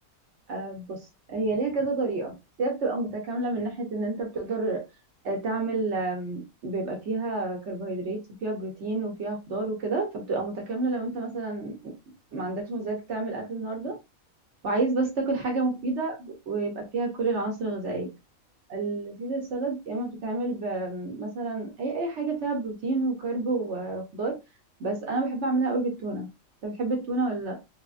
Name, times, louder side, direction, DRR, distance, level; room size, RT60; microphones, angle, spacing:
voice 1, 0.5-4.8 5.2-11.9 12.3-14.0 14.6-18.2 18.7-24.4 24.8-26.3 26.6-27.6, right 3 dB, 60° right, 1 dB, 1.0 m, -29 dB
3.3 x 2.1 x 2.4 m, 0.25 s
omnidirectional pair, 1.5 m